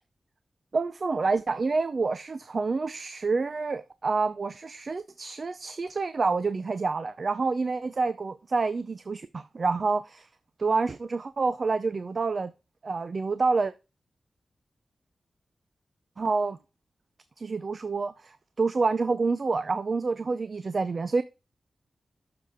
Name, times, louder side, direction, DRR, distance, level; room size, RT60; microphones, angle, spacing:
voice 1, 0.7-10.3 10.6-12.5 12.8-13.7 16.2-16.6 17.4-21.2, right 4 dB, 55° right, 0.6 m, -28 dB
7.8 x 6.8 x 4.9 m
wide cardioid pair, 80°, 0 cm